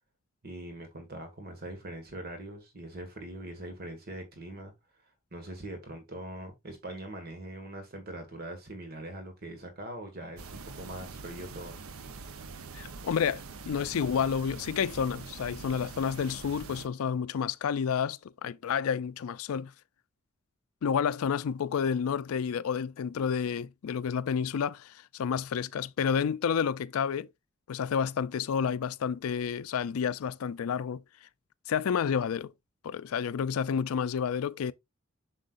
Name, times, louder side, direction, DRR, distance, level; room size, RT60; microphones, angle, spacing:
voice 1, 0.4-4.7 5.3-11.8, right 1 dB, 45° right, 1.7 m, -42 dB
sound 1, 10.4-16.9, right 4 dB, 80° right, 0.7 m, -44 dB
voice 2, 12.7-19.7 20.8-27.3 27.7-31.0 31.7-32.5 32.8-34.7, left 7 dB, 85° left, 0.4 m, -30 dB
7.8 x 6.3 x 2.5 m
head